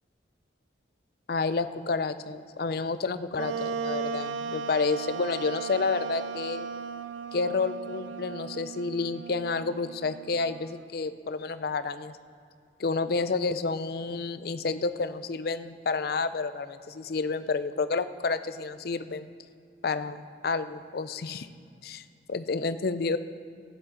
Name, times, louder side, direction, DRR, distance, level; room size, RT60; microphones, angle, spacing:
voice 1, 1.3-6.7 7.3-12.1 12.8-19.3 19.8-21.5 21.8-23.2, left 4 dB, 55° left, 12 dB, 0.4 m, -30 dB
Wind instrument woodwind instrument, 3.4-10.8, right 5 dB, 85° right, 0.4 m, -36 dB
15.0 x 10.0 x 3.9 m, 2.3 s
head